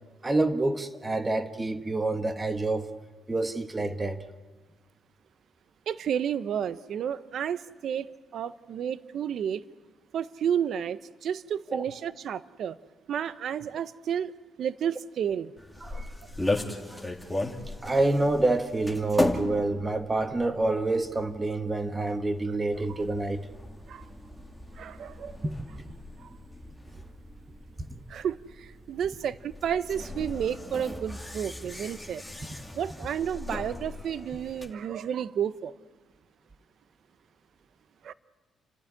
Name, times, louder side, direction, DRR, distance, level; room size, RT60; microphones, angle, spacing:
voice 1, 0.2-2.8 3.3-4.2 11.7-11.8 15.8-16.1 16.4-17.1 17.8-23.4 25.4-25.5, right 2 dB, 20° right, 1.6 m, -27 dB
voice 2, 5.9-8.1 8.3-9.6 10.1-12.8 13.1-14.3 14.6-15.5 23.9-24.1 24.8-25.4 26.2-26.3 28.1-32.2 32.7-35.7 38.0-38.1, right 8 dB, 65° right, 0.7 m, -31 dB
sound 1, 15.6-34.7, left 2 dB, 5° left, 2.6 m, -37 dB
29.5 x 12.5 x 9.9 m
cardioid pair, 90°, 0 cm